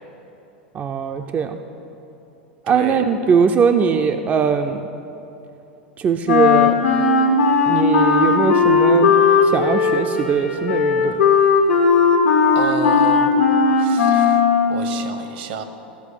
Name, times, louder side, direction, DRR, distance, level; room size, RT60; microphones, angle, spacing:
voice 1, 0.7-1.6 2.7-4.8 6.0-6.8 7.7-9.1 9.4-11.2, right 6 dB, 30° right, 6 dB, 0.4 m, -20 dB
voice 2, 2.7-3.0 12.5-13.3 13.8-15.6, right 5 dB, 65° right, 8 dB, 0.9 m, -30 dB
Wind instrument woodwind instrument, 6.3-14.9, left 5 dB, 85° left, 1.5 m, -16 dB
14.0 x 4.8 x 6.4 m, 2.9 s
hypercardioid pair, 95°, 6 cm